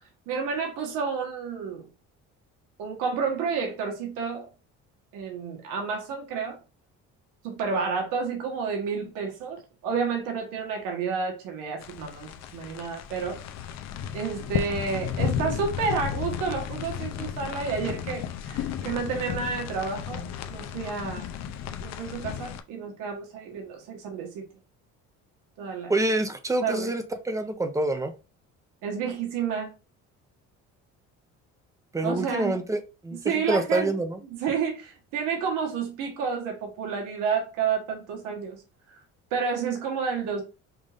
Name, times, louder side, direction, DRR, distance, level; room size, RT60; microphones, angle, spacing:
voice 1, 0.3-1.9 2.8-4.5 5.1-6.6 7.4-13.4 14.1-21.2 21.8-24.5 25.6-25.9 26.6-26.9 28.8-29.8 32.0-32.6 33.1-33.9 34.3-38.6 38.9-39.0 39.3-40.4, right 5 dB, 85° right, 1.4 m, -30 dB
sound 1, 11.8-22.6, left 8 dB, 60° left, 0.6 m, -33 dB
voice 2, 25.9-28.1 31.9-33.2 33.5-34.2, right 2 dB, 10° right, 0.5 m, -26 dB
5.4 x 2.5 x 3.4 m
cardioid pair, 150°, 31 cm